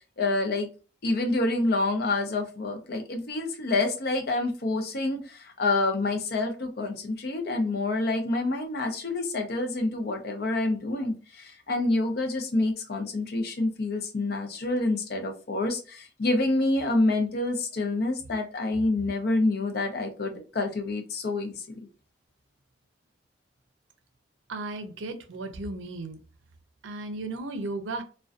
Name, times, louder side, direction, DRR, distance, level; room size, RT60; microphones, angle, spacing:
voice 1, 0.2-0.7 1.0-21.8, left 2 dB, 55° left, 0.5 m, -27 dB
voice 2, 24.5-26.2 26.8-28.0, right 2 dB, 90° right, 0.5 m, -35 dB
2.4 x 2.2 x 2.4 m
head